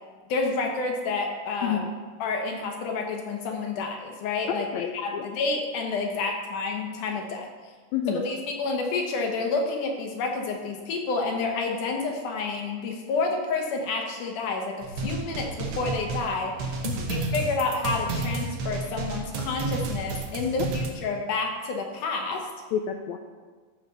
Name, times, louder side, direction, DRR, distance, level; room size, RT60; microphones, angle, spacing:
voice 1, 0.3-1.8 2.2-7.5 8.2-22.5, left 3 dB, 70° left, 2 dB, 2.4 m, -29 dB
voice 2, 1.6-1.9 4.7-5.3 7.9-8.2 15.0-15.1 16.8-17.1 22.7-23.2, left 8 dB, 90° left, 4 dB, 1.6 m, -29 dB
sound 1, 14.8-20.9, right 3 dB, 80° right, 1.1 m, -31 dB
13.5 x 5.0 x 5.5 m, 1.4 s
omnidirectional pair, 3.9 m